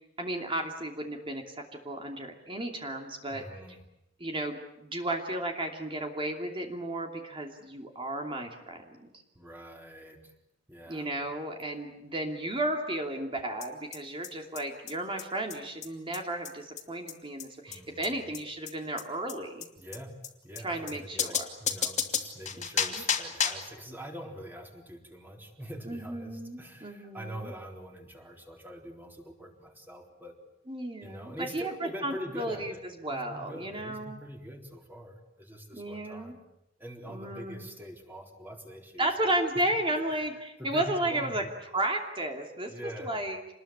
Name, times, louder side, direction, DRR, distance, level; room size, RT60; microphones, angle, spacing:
voice 1, 0.0-3.4 4.2-9.1 10.9-19.7 20.6-21.5 22.6-23.0 25.9-27.5 30.7-32.7 33.0-34.2 35.7-36.3 37.1-37.7 39.0-41.4 41.7-42.7 43.0-43.4, right 1 dB, 25° right, 3 dB, 2.8 m, -33 dB
voice 2, 3.3-3.8 9.4-10.3 10.7-11.1 17.7-18.3 19.8-20.2 20.4-30.3 31.0-36.4 36.8-39.7 39.9-40.3 40.6-41.5 42.7-43.3, equal, 10° right, 2 dB, 4.0 m, -44 dB
sound 1, 13.6-13.7 13.9-14.0 14.2-14.3 14.6-14.7 14.9-15.0 15.2-15.3 15.5-15.6 15.8-15.9 16.1-16.2 16.4-16.5 16.8-16.9 17.1-17.2 17.4-17.5 17.7-17.8 18.0-18.1 18.3-18.4 18.7-18.8 19.0-19.1 19.3-19.4 19.6-19.7 19.9-20.0 20.2-20.3 20.6-20.7 20.9-21.0 21.2-23.7, left 7 dB, 40° left, 2.6 m, -31 dB
27.5 x 20.5 x 8.8 m, 0.85 s
head